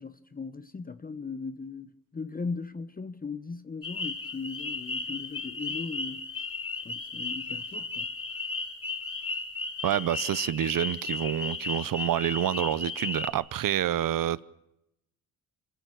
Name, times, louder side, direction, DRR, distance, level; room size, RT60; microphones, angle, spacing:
voice 1, 0.0-6.3 6.8-8.1, left 4 dB, 25° left, 0.9 m, -38 dB
sound 1, 3.8-13.3, left 4 dB, 40° left, 5.5 m, -35 dB
voice 2, 9.8-14.4, right 11 dB, 70° right, 0.8 m, -28 dB
26.0 x 15.0 x 8.6 m
cardioid pair, 75°, 35 cm